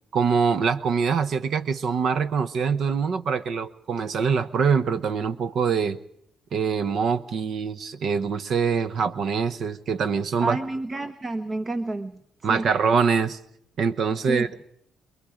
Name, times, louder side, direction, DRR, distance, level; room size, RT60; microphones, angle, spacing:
voice 1, 0.1-6.0 6.5-10.6 12.4-13.4 13.8-14.5, right 6 dB, 60° right, 13 dB, 0.9 m, -24 dB
voice 2, 10.4-12.1 12.4-12.7 14.3-14.5, right 2 dB, 30° right, 12 dB, 1.0 m, -29 dB
26.0 x 21.0 x 5.1 m, 0.72 s
cardioid pair, 90°, 0 cm